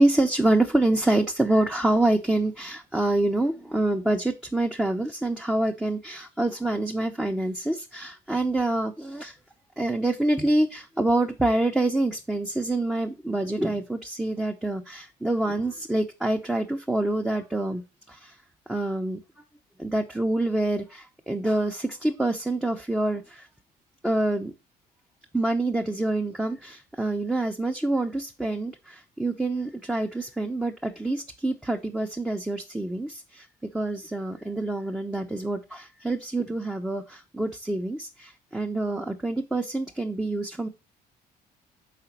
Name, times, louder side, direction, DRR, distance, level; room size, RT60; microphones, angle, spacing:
voice 1, 0.0-9.4 9.8-18.4 18.7-19.4 19.8-23.5 24.0-24.5 25.3-40.7, right 2 dB, 5° right, 2 dB, 0.6 m, -26 dB
5.0 x 3.7 x 5.7 m, 0.28 s
cardioid pair, 110°, 17 cm